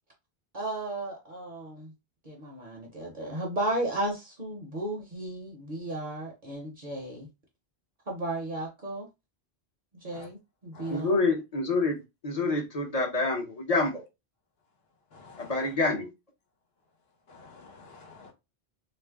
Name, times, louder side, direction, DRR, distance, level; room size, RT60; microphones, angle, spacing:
voice 1, 0.5-1.9 2.2-7.3 8.1-9.1 9.9-11.2, right 2 dB, 50° right, 0.8 m, -34 dB
voice 2, 10.9-14.0 15.4-16.1, left 3 dB, 40° left, 0.7 m, -27 dB
voice 3, 15.2-15.5 17.4-18.3, left 4 dB, 70° left, 1.0 m, -49 dB
2.5 x 2.0 x 3.4 m
omnidirectional pair, 1.1 m